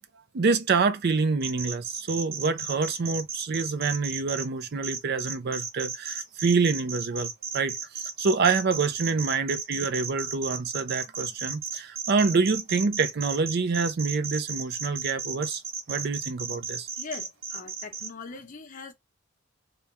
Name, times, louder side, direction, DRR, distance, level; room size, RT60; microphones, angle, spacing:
voice 1, 0.3-15.6 15.9-16.9, right 4 dB, 50° right, 0.5 m, -27 dB
sound 1, 1.4-4.4 4.8-18.1, right 6 dB, 70° right, 0.9 m, -34 dB
voice 2, 17.0-18.9, left 4 dB, 40° left, 0.8 m, -41 dB
3.5 x 2.3 x 4.0 m
head